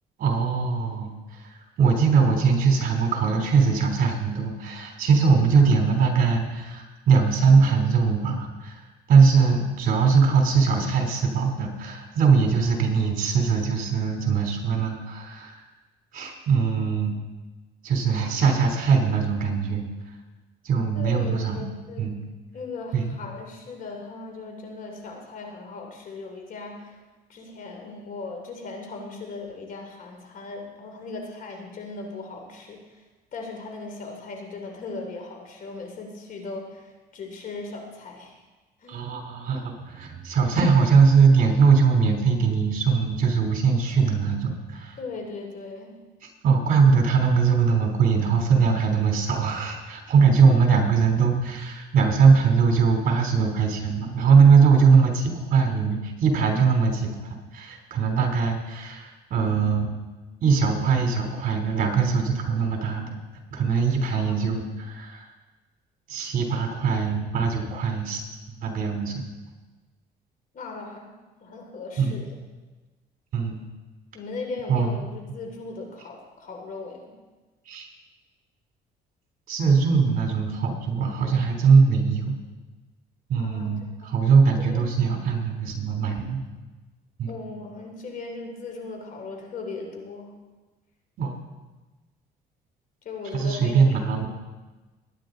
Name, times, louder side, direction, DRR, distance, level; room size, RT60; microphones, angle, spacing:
voice 1, 0.2-8.8 9.1-15.6 16.1-17.2 17.8-19.9 20.6-21.6 22.0-22.1 22.9-23.1 38.9-45.0 46.2-59.9 60.4-63.2 63.5-65.3 66.1-68.2 68.5-69.2 72.0-72.1 73.3-73.6 74.7-74.9 77.6-77.9 79.5-82.4 83.3-86.4 87.2-87.3 91.2-91.4 93.3-94.3, right 5 dB, 55° right, 2 dB, 3.3 m, -21 dB
voice 2, 20.9-22.1 22.5-27.0 27.3-33.0 33.3-38.4 38.8-39.0 45.0-46.0 50.1-50.3 64.1-64.6 70.5-71.1 71.4-72.3 74.1-77.2 83.4-83.7 84.0-84.2 84.6-84.9 87.3-90.3 93.0-93.9, left 3 dB, 55° left, 3 dB, 3.0 m, -38 dB
20.0 x 9.9 x 3.9 m, 1.2 s
cardioid pair, 110°, 17 cm